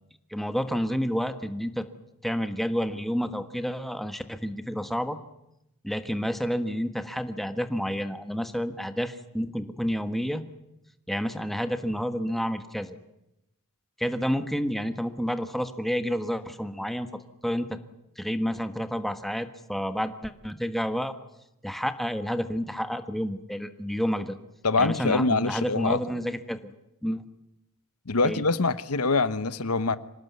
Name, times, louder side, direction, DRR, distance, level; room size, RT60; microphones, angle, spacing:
voice 1, 0.3-1.9 2.2-5.2 5.8-10.4 11.1-13.0 14.0-17.8 18.2-21.1 21.6-24.4 24.8-26.7 27.0-27.2 28.2-28.4, equal, ahead, 8 dB, 1.4 m, -30 dB
voice 2, 24.6-26.0 28.1-30.0, left 3 dB, 85° left, 13 dB, 1.1 m, -24 dB
25.5 x 18.5 x 9.6 m, 0.85 s
head